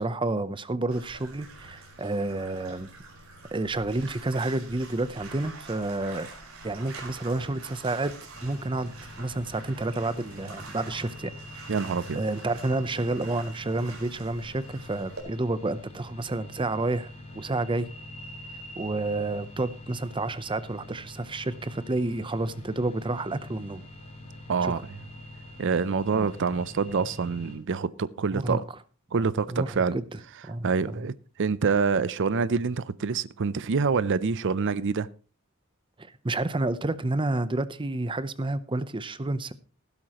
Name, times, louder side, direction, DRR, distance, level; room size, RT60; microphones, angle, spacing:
voice 1, 0.0-2.9 3.5-6.3 6.6-8.1 8.4-8.9 9.2-11.7 12.1-17.9 18.8-23.8 24.6-24.7 26.1-26.3 28.3-28.6 29.5-30.0 30.4-31.0 36.0-39.5, right 2 dB, 25° right, 0.7 m, -30 dB
Bathtub (filling or washing), 0.9-15.2, right 3 dB, 75° right, 4.6 m, -46 dB
sound 1, 8.3-27.6, left 1 dB, 30° left, 4.3 m, -45 dB
voice 2, 11.7-12.2 24.5-24.8 25.6-28.6 29.1-30.0 30.6-31.1 31.4-35.1, right 5 dB, 60° right, 0.5 m, -26 dB
15.5 x 12.5 x 3.0 m
head